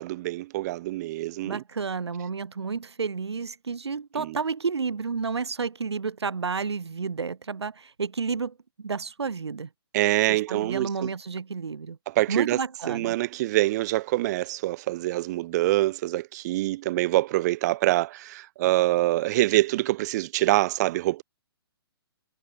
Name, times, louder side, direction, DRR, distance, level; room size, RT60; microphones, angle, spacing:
voice 1, 0.0-1.6 4.2-4.4 9.9-11.1 12.1-12.6 12.9-21.2, right 17 dB, 40° right, 6.4 m, -25 dB
voice 2, 1.4-9.7 10.3-12.0 12.3-13.1, right 5 dB, 85° right, 5.2 m, -31 dB
hypercardioid pair, 140°, 13 cm